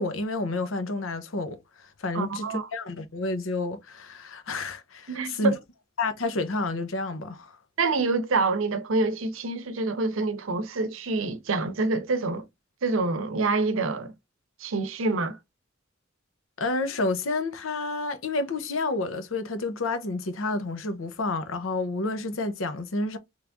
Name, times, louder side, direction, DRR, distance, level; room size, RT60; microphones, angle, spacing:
voice 1, 0.0-5.6 6.0-7.6 16.6-23.2, left 2 dB, 85° left, 0.7 m, -30 dB
voice 2, 2.1-2.7 5.1-5.6 7.8-12.5 12.8-14.1 14.6-15.4, right 3 dB, 80° right, 0.6 m, -26 dB
3.3 x 3.1 x 2.5 m
head